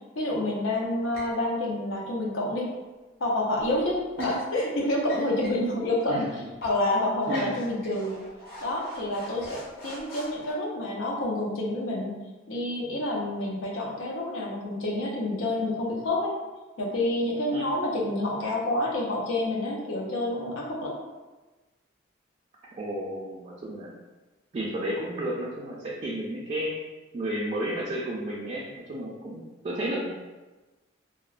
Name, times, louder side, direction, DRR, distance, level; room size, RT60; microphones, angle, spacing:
voice 1, 0.1-2.7 3.2-6.3 6.6-8.2 8.6-12.2 12.5-16.3 16.8-21.0, left 1 dB, 80° left, -2 dB, 0.6 m, -28 dB
sound 1, 1.1-1.4 3.6-4.4 5.0-5.7 6.0-6.1 6.6-6.8 7.2-10.5, left 1 dB, 50° left, 0.8 m, -44 dB
voice 2, 6.0-6.5 7.3-7.5 17.5-17.6 22.7-23.9 24.5-26.7 27.1-30.1, right 1 dB, 35° right, -5 dB, 0.3 m, -32 dB
2.8 x 2.0 x 2.4 m, 1.2 s
head